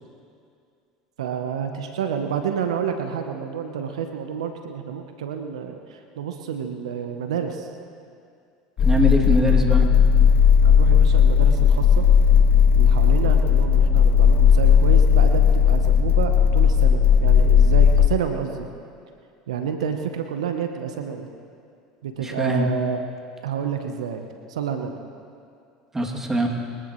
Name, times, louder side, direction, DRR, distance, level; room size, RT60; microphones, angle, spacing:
voice 1, 1.2-7.7 10.6-12.1 12.7-18.7 19.5-21.3 22.0-23.0 23.4-25.0, right 7 dB, 80° right, 6 dB, 1.0 m, -29 dB
sound 1, 8.8-18.1, left 7 dB, 45° left, 1.0 m, -16 dB
voice 2, 8.8-9.9 22.2-22.7 25.9-26.5, right 1 dB, 15° right, 0 dB, 2.7 m, -22 dB
23.0 x 18.0 x 3.2 m, 2.4 s
hypercardioid pair, 80°, 3 cm